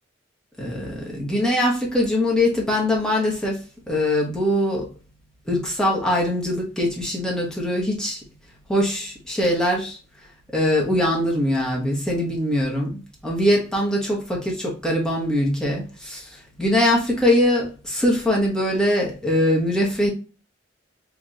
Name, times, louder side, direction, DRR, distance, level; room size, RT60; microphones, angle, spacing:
voice 1, 0.6-3.6 3.9-4.9 5.5-8.2 8.7-10.0 10.5-16.3 16.6-20.1, left 1 dB, 5° left, 1.1 m, -22 dB
4.7 x 2.8 x 2.4 m
head